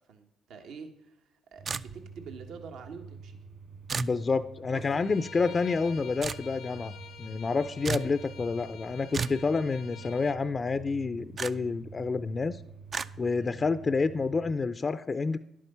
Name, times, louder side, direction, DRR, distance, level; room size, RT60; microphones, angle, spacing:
voice 1, 0.1-1.2 1.5-3.4 4.7-5.0 5.5-5.6 7.8-8.1 13.3-13.5, right 5 dB, 75° right, 5 dB, 1.4 m, -46 dB
sound 1, 1.6-14.5, right 5 dB, 60° right, 2.6 m, -48 dB
sound 2, 1.7-2.2 3.9-4.2 6.2-6.4 7.8-8.1 9.1-9.4 11.4-11.5 12.9-13.1, right 5 dB, 45° right, 0.4 m, -32 dB
voice 2, 4.0-6.9 7.2-12.6 13.2-15.4, left 4 dB, 35° left, 12 dB, 0.5 m, -29 dB
Bowed string instrument, 4.9-10.4, left 8 dB, 75° left, 0.8 m, -48 dB
11.0 x 8.4 x 5.5 m, 0.83 s
cardioid pair, 80°, 0 cm